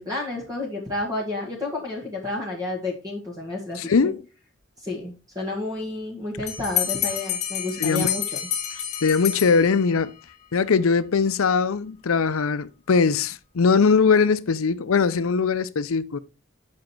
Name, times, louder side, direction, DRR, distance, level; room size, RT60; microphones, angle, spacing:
voice 1, 0.0-3.8 4.8-8.4, left 2 dB, 15° right, 1.9 m, -30 dB
voice 2, 3.8-4.2 7.8-8.1 9.0-10.1 10.5-16.2, left 5 dB, 75° left, 0.6 m, -21 dB
Bell, 6.5-10.1, left 10 dB, 35° left, 1.8 m, -28 dB
7.5 x 5.2 x 4.5 m
head